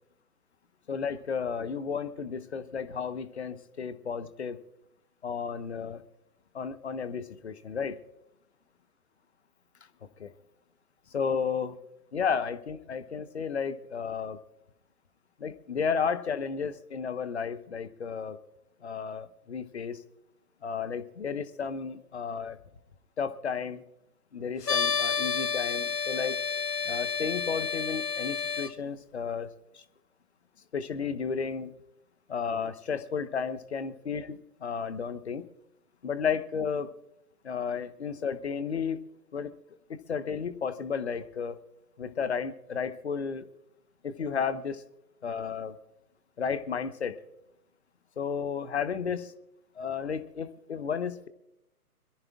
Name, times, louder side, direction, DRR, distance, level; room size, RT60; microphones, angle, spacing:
voice 1, 0.9-4.6 5.2-6.0 6.5-8.0 10.2-10.3 11.1-11.8 12.1-14.4 15.4-18.4 18.8-20.0 20.6-22.6 23.2-23.8 24.3-26.4 26.8-29.8 30.7-31.7 32.3-35.5 36.0-36.9 37.4-39.0 39.3-39.5 40.1-41.6 42.0-43.5 44.0-44.8 45.2-45.7 46.4-47.2 48.2-49.3 49.8-51.3, left 6 dB, 45° left, 12 dB, 1.1 m, -33 dB
sound 1, 24.6-28.7, left 6 dB, 85° left, 0.9 m, -30 dB
26.0 x 14.0 x 2.4 m, 0.87 s
figure-of-eight pair, 135°, 46 cm